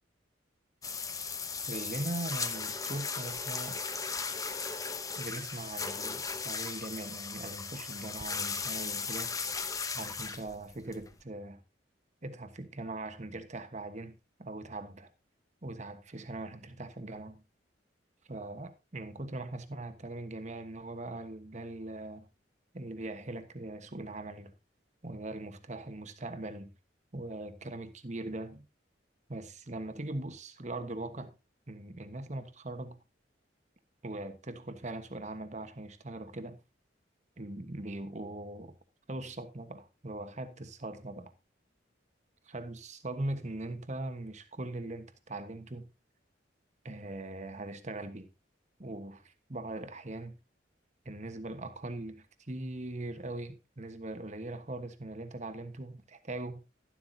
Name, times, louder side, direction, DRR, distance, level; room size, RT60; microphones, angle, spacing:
sound 1, 0.8-11.2, left 5 dB, 20° left, 0.8 m, -37 dB
voice 1, 1.7-3.8 5.2-9.3 9.9-11.6 12.2-15.1 15.6-17.4 18.3-22.3 22.7-24.5 25.0-26.7 27.1-28.7 29.3-31.3 31.7-33.0 34.0-36.6 37.4-38.8 39.1-41.3 42.4-45.9 46.8-48.3 48.8-50.4 51.0-56.6, right 2 dB, 40° right, 1.3 m, -40 dB
12.0 x 12.0 x 2.7 m
head